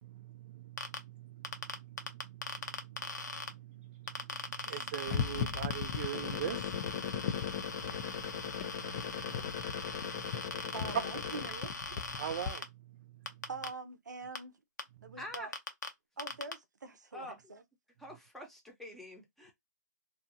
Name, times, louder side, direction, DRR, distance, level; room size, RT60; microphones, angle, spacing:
voice 1, 0.0-11.1 12.2-13.5 15.0-15.2, right 10 dB, 40° right, 0.3 m, -43 dB
sound 1, 0.8-1.0 1.4-3.5 4.1-12.6 13.3-13.7 14.4-14.5 14.8-14.9 15.3-15.9 16.2-16.5, left 4 dB, 80° left, 0.8 m, -40 dB
sound 2, 5.1-12.5, left 8 dB, 35° left, 0.4 m, -38 dB
voice 2, 10.7-11.8 13.5-14.5 15.0-15.5 16.2-17.6, right 4 dB, 85° right, 0.7 m, -44 dB
voice 3, 15.2-15.5 17.1-17.4 18.0-19.5, left 1 dB, ahead, 0.7 m, -46 dB
2.7 x 2.4 x 2.6 m
hypercardioid pair, 145°, 9 cm